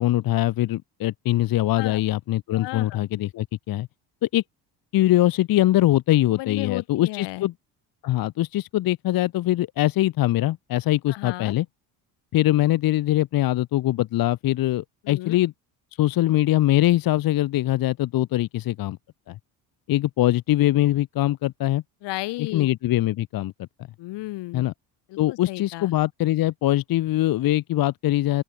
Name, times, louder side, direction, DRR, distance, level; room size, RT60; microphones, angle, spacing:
voice 1, 0.0-3.9 4.2-4.4 4.9-7.5 8.0-11.6 12.3-15.5 16.0-19.0 19.3-19.4 19.9-21.8 22.5-23.7 24.5-24.7 25.2-28.4, left 15 dB, 55° left, 1.1 m, -22 dB
voice 2, 2.5-3.0 6.4-7.5 11.1-11.5 15.0-15.4 22.0-22.7 24.0-24.7 25.1-25.9, left 19 dB, 75° left, 3.7 m, -34 dB
open air
cardioid pair, 105°, 42 cm